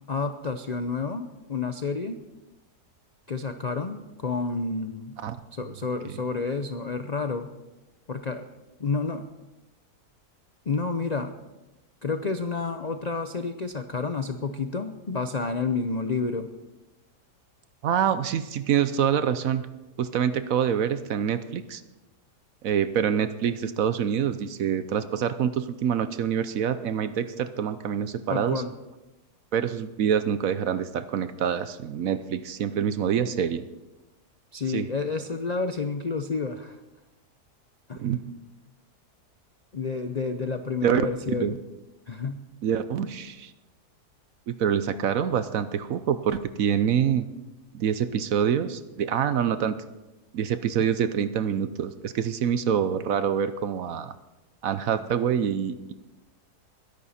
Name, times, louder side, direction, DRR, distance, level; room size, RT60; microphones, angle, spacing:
voice 1, 0.1-2.2 3.3-5.2 5.5-7.5 8.1-8.4 8.8-9.2 10.7-11.3 12.0-16.5 28.3-28.7 34.5-36.8 37.9-38.0 39.7-41.6 42.1-42.4, left 4 dB, 60° left, 8 dB, 0.4 m, -30 dB
voice 2, 17.8-19.7 20.0-21.8 22.6-28.6 29.5-33.6 34.7-34.9 38.0-38.2 40.8-41.0 41.4-41.6 42.6-43.5 44.5-47.3 47.7-49.8 50.3-54.1 54.6-55.9, right 8 dB, 65° right, 12 dB, 1.0 m, -26 dB
21.5 x 11.0 x 4.2 m, 1.0 s
omnidirectional pair, 1.7 m